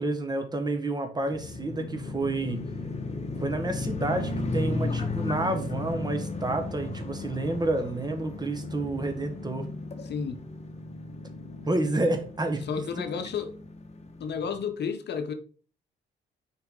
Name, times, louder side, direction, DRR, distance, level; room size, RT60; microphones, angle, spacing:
voice 1, 0.0-2.6 3.4-9.7 11.6-12.6, right 2 dB, 20° right, 1.4 m, -29 dB
sound 1, 1.3-14.6, left 3 dB, 35° left, 1.4 m, -35 dB
voice 2, 10.0-10.4 12.6-13.5 14.2-15.3, left 6 dB, 60° left, 0.9 m, -31 dB
6.7 x 4.7 x 3.8 m
cardioid pair, 90°, 20 cm